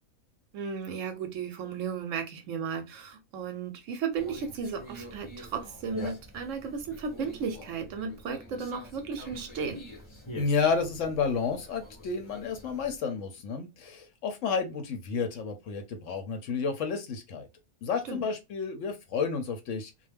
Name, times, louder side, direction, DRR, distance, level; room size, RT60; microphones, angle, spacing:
voice 1, 0.5-9.8 18.1-18.2, right 6 dB, 70° right, 0.8 m, -35 dB
Conversation, 4.1-13.0, left 1 dB, 40° left, 0.4 m, -45 dB
voice 2, 10.4-17.5 17.8-19.9, left 5 dB, 70° left, 0.9 m, -31 dB
2.4 x 2.1 x 3.2 m
omnidirectional pair, 1.5 m